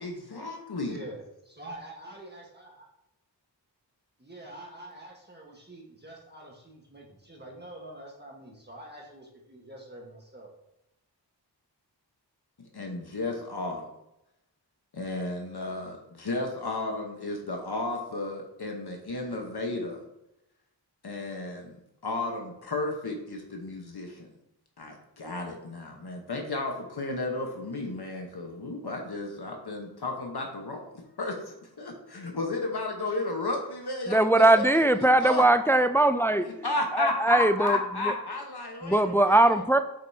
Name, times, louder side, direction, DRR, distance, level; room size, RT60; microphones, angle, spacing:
voice 1, 0.0-1.0 12.7-13.9 14.9-20.0 21.0-21.8 22.0-24.3 24.8-35.5 36.4-39.6, left 2 dB, 65° left, 2 dB, 1.2 m, -33 dB
voice 2, 0.8-1.2 1.5-2.9 4.2-10.5, right 1 dB, 25° right, -2 dB, 1.4 m, -45 dB
voice 3, 34.1-36.5 37.0-37.8 38.8-39.8, right 2 dB, 5° left, 9 dB, 0.3 m, -20 dB
7.7 x 5.3 x 2.8 m, 0.87 s
wide cardioid pair, 50°, 42 cm